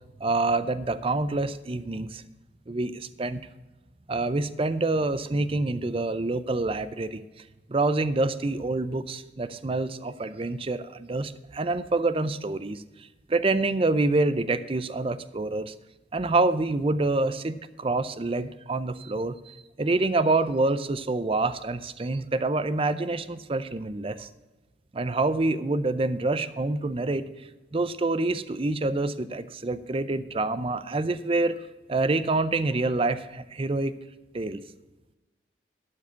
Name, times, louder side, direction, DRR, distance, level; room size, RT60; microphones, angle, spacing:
voice 1, 0.2-2.2 2.7-3.4 4.1-7.2 7.7-12.8 13.3-15.7 16.1-24.3 24.9-27.3 27.7-34.0 34.3-34.6, right 2 dB, 30° right, 14 dB, 0.5 m, -27 dB
12.0 x 4.8 x 8.3 m, 1.1 s
head